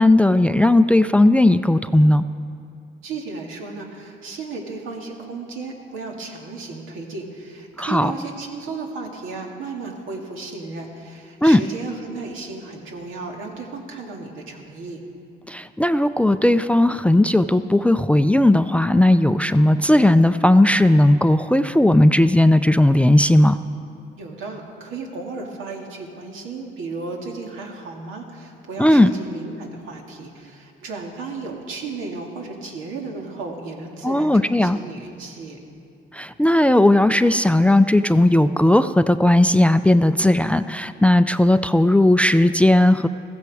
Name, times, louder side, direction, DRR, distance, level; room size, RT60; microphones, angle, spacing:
voice 1, 0.0-2.2 7.8-8.1 11.4-11.6 15.5-23.6 28.8-29.1 34.0-34.8 36.1-43.1, left 1 dB, 5° left, 12 dB, 0.4 m, -16 dB
voice 2, 3.0-15.0 24.2-35.6, right 3 dB, 85° right, 1 dB, 2.1 m, -34 dB
15.5 x 14.5 x 4.8 m, 2.4 s
cardioid pair, 90°, 20 cm